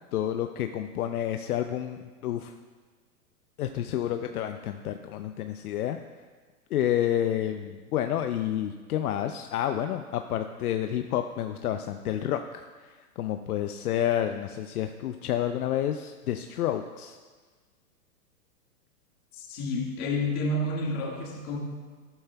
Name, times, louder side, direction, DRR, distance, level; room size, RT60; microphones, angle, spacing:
voice 1, 0.1-2.5 3.6-6.0 6.7-17.2, left 11 dB, 70° left, 7 dB, 0.7 m, -29 dB
voice 2, 19.3-21.6, left 1 dB, 35° left, 0 dB, 1.9 m, -30 dB
13.5 x 11.5 x 2.3 m, 1.4 s
hypercardioid pair, 130°, 47 cm